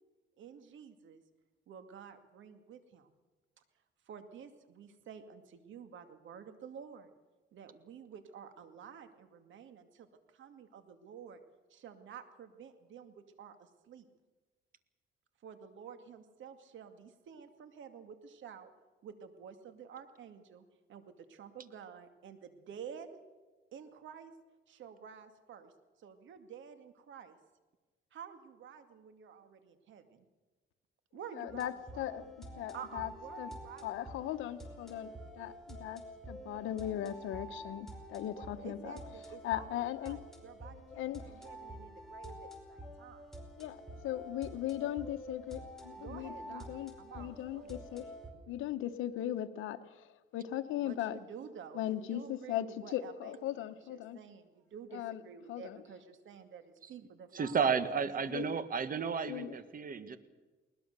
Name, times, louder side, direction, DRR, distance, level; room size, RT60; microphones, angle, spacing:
voice 1, 0.4-1.2 1.7-3.1 4.1-7.1 7.5-11.4 11.7-14.1 15.4-18.7 19.0-23.2 23.7-24.3 24.7-25.7 26.0-27.4 28.1-30.3 31.1-32.1 32.7-34.3 38.3-43.2 46.0-46.7 47.0-47.8 50.8-57.8 58.0-58.3, right 7 dB, 75° right, 8 dB, 2.3 m, -50 dB
voice 2, 31.3-32.2 32.5-33.1 33.4-33.5 33.8-36.0 36.3-38.9 39.4-40.2 41.0-41.3 43.6-48.1 48.5-51.2 51.7-54.2 54.9-55.2 55.5-55.8 58.3-58.5 59.2-59.5, left 12 dB, 85° left, 9 dB, 1.0 m, -38 dB
sound 1, 31.5-48.3, equal, ahead, 5.2 m, -48 dB
voice 3, 57.3-60.2, right 6 dB, 45° right, 12 dB, 1.6 m, -32 dB
21.0 x 20.0 x 6.8 m, 1.2 s
cardioid pair, 90°, 20 cm